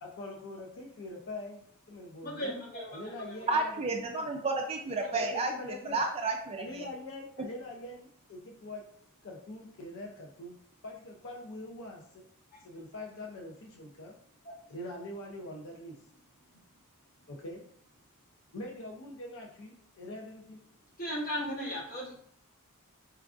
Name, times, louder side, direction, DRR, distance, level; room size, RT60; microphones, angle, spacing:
voice 1, 0.0-2.6 2.9-4.3 5.1-6.0 6.6-8.8 9.2-10.6 10.8-12.2 12.6-14.2 14.7-16.0 17.3-17.6 18.5-20.6, left 1 dB, 60° left, 1 dB, 0.5 m, -43 dB
voice 2, 2.2-3.6 5.1-5.2 12.5-12.6 14.4-14.5 21.0-22.2, equal, 40° left, -4 dB, 1.1 m, -37 dB
voice 3, 3.5-6.9, right 3 dB, 25° right, 3 dB, 0.3 m, -31 dB
4.3 x 2.4 x 2.4 m, 0.62 s
head